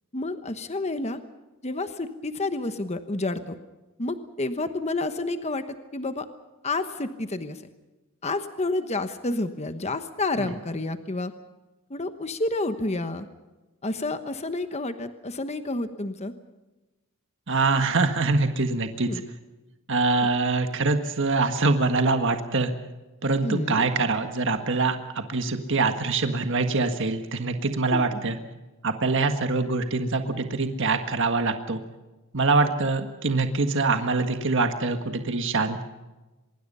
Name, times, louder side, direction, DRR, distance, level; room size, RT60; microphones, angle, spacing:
voice 1, 0.1-1.2 1.6-3.6 4.0-6.3 6.6-7.6 8.2-11.3 11.9-13.3 13.8-16.3 19.1-19.2 20.2-20.3 23.4-23.9 27.9-28.3 32.6-32.7, left 2 dB, 30° left, 9 dB, 1.1 m, -30 dB
voice 2, 17.5-19.1 19.9-22.7 23.2-28.4 28.8-31.8 32.3-35.8, right 3 dB, 55° right, 6 dB, 1.7 m, -24 dB
24.5 x 22.5 x 5.6 m, 1.1 s
head